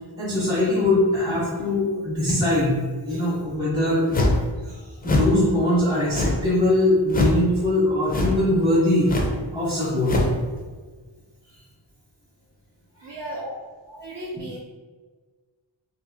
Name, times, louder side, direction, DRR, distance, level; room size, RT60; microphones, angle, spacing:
voice 1, 0.2-2.8 3.1-4.3 4.7-9.1 9.5-10.2 13.0-13.2, left 1 dB, 10° right, -8 dB, 0.7 m, -22 dB
sound 1, 4.1-4.5 5.0-5.4 6.1-6.5 7.1-7.4 8.1-8.5 9.0-9.4 10.0-10.4, left 1 dB, 25° left, 0.3 m, -22 dB
voice 2, 13.0-13.5 13.8-14.6, right 1 dB, 65° right, -4 dB, 0.5 m, -35 dB
2.7 x 2.6 x 3.9 m, 1.4 s
wide cardioid pair, 175°, 44 cm